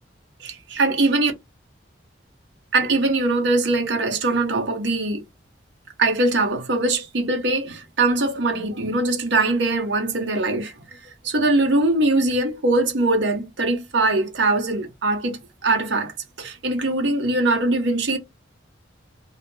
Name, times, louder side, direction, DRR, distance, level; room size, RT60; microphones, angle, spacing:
voice 1, 0.4-1.3 2.7-5.2 6.0-10.7 11.2-18.2, right 2 dB, 70° right, 0.7 m, -22 dB
2.1 x 2.0 x 3.0 m
head